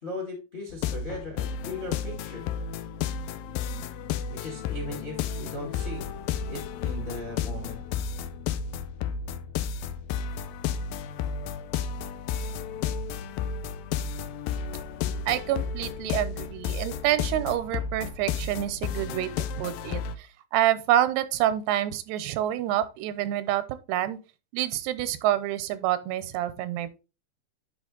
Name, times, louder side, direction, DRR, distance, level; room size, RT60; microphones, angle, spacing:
voice 1, 0.0-2.4 4.3-6.0 6.5-7.8, left 3 dB, 30° left, 0.9 m, -38 dB
sound 1, 0.7-20.2, left 7 dB, 85° left, 2.0 m, -32 dB
voice 2, 15.3-19.3 19.6-23.6 23.9-24.2 24.5-27.0, right 12 dB, 85° right, 2.8 m, -27 dB
9.9 x 3.8 x 3.8 m
omnidirectional pair, 4.6 m